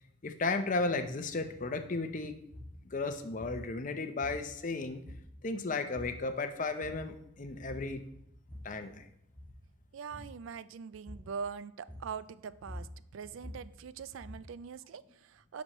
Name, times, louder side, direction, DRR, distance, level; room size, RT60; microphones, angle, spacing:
voice 1, 0.2-2.4 2.8-5.0 5.4-8.0 8.6-9.1, left 3 dB, 40° left, 8 dB, 0.6 m, -34 dB
sound 1, 2.5-2.8 3.4-3.7 4.2-4.7 5.0-5.5 5.9-6.3 6.6-7.2 7.6-8.0 8.3-8.8 9.2-9.6 10.1-10.4 11.1-11.4 11.9-12.2 12.5-14.6, left 1 dB, 10° left, 2.2 m, -47 dB
voice 2, 9.9-15.6, right 6 dB, 70° right, 16 dB, 0.3 m, -43 dB
9.7 x 6.2 x 3.0 m, 0.77 s
head